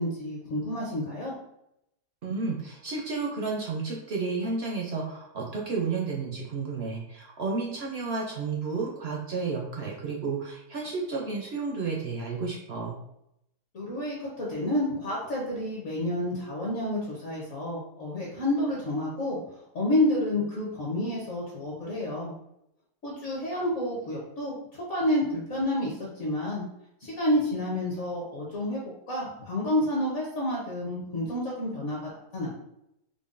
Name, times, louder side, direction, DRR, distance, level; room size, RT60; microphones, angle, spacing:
voice 1, 0.0-1.3 13.7-22.3 23.0-26.6 27.0-28.8 29.1-32.6, left 1 dB, 55° left, -4 dB, 1.1 m, -29 dB
voice 2, 2.2-13.0, right 4 dB, 60° right, -2 dB, 0.6 m, -32 dB
5.1 x 2.2 x 2.5 m, 0.78 s
omnidirectional pair, 1.7 m